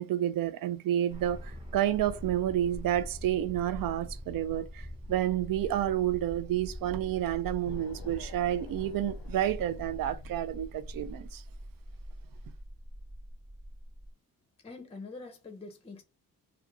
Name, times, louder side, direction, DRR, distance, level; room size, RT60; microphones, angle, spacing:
voice 1, 0.0-11.4, right 12 dB, 65° right, 0.5 m, -30 dB
sound 1, 1.1-14.1, equal, 15° right, 0.8 m, -43 dB
sound 2, 7.7-11.4, left 9 dB, 70° left, 0.5 m, -51 dB
voice 2, 14.6-16.0, left 3 dB, 15° left, 0.6 m, -44 dB
2.4 x 2.3 x 2.9 m
cardioid pair, 70°, 37 cm